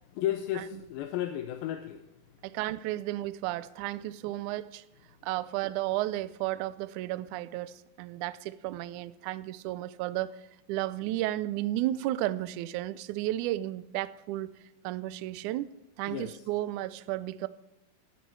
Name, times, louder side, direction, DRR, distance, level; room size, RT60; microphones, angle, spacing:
voice 1, 0.2-2.0 16.1-16.4, left 12 dB, 85° left, 2.5 m, -33 dB
voice 2, 2.4-4.8 5.2-10.4 10.7-14.6 14.8-15.7 16.0-17.5, right 15 dB, 85° right, 1.7 m, -33 dB
14.5 x 14.0 x 4.6 m
omnidirectional pair, 4.1 m